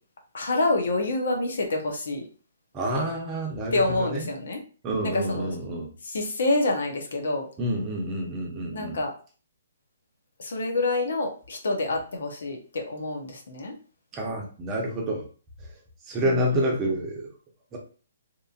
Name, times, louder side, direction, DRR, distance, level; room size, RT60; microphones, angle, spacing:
voice 1, 0.3-2.3 3.7-4.6 5.0-5.5 6.0-7.5 8.7-9.1 10.4-13.7 16.2-16.9, left 2 dB, 70° left, 3 dB, 0.8 m, -27 dB
voice 2, 2.7-4.3 4.8-5.9 7.6-9.0 14.1-15.2 16.1-17.3 17.7-17.8, right 1 dB, 20° right, -1 dB, 0.8 m, -28 dB
2.9 x 2.5 x 2.4 m, 0.38 s
hypercardioid pair, 145°, 0 cm